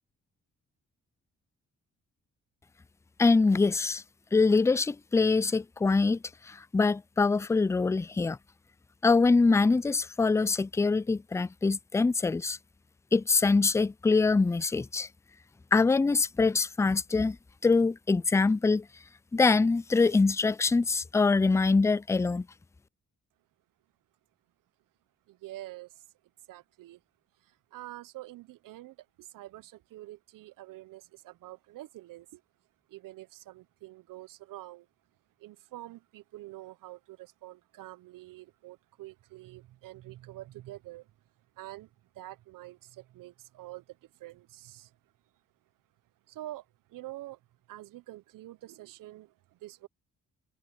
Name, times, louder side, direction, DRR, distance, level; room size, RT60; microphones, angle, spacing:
voice 1, 3.2-4.0 4.3-6.2 6.5-8.4 9.0-12.6 13.1-15.1 15.7-17.4 17.6-18.9 19.3-22.5, left 4 dB, 10° left, 0.3 m, -24 dB
voice 2, 25.3-26.0 26.5-27.0 27.4-32.4 32.9-34.9 35.4-41.1 41.6-45.0 46.3-47.4 47.7-49.9, right 16 dB, 85° right, 0.7 m, -47 dB
supercardioid pair, 55°, 32 cm